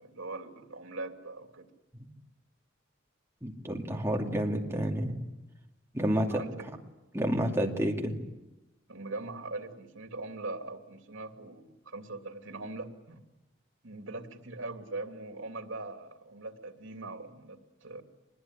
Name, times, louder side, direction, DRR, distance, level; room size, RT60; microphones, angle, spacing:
voice 1, 0.0-1.7 6.0-6.6 8.9-13.2 13.8-18.0, right 2 dB, 85° right, 5 dB, 2.8 m, -41 dB
voice 2, 3.4-5.2 5.9-6.4 7.1-8.2, equal, 15° right, 1 dB, 2.5 m, -29 dB
25.0 x 21.0 x 10.0 m, 0.98 s
head